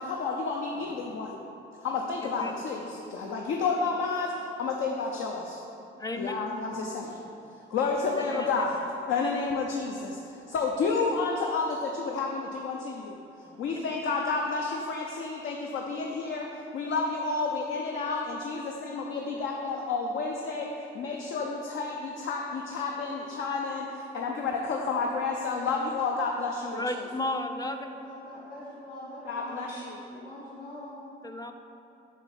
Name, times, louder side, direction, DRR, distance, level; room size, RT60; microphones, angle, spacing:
voice 1, 0.0-1.4 1.8-5.6 6.2-7.2 7.7-13.2 13.6-27.1 29.2-30.0, left 4 dB, 75° left, 0 dB, 0.6 m, -30 dB
voice 2, 6.0-6.3 8.2-8.6 26.7-27.9 31.2-31.5, left 2 dB, 20° left, 6 dB, 0.5 m, -33 dB
voice 3, 27.6-29.7 30.1-31.0, left 1 dB, 45° left, -8 dB, 1.7 m, -43 dB
7.3 x 3.5 x 5.8 m, 2.7 s
cardioid pair, 90°, 20 cm